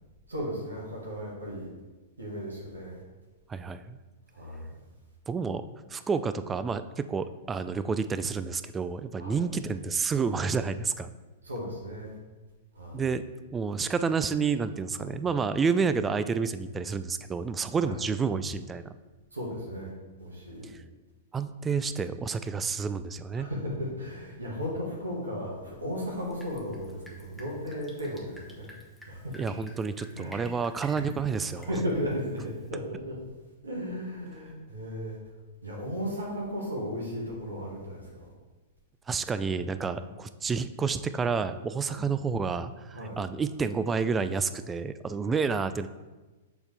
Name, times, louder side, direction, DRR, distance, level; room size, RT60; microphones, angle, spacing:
voice 1, 0.3-1.7 2.2-3.0 4.3-4.7 9.2-9.4 11.4-12.2 12.8-13.0 15.0-15.1 17.8-18.0 19.3-19.9 20.2-20.7 23.4-28.7 29.1-29.5 30.1-30.4 31.5-33.2 33.6-35.2 35.6-38.3 39.9-40.1 41.8-42.0 42.9-43.2 45.2-45.4, equal, 90° right, -3 dB, 1.7 m, -35 dB
voice 2, 3.5-4.0 5.3-5.7 5.9-11.1 12.9-13.2 13.5-18.9 21.3-23.5 29.4-31.7 39.1-45.9, right 5 dB, 15° right, 12 dB, 0.3 m, -29 dB
Drip, 26.1-32.7, equal, ahead, 1.0 m, -52 dB
7.0 x 4.1 x 3.3 m, 1.2 s
hypercardioid pair, 110°, 0 cm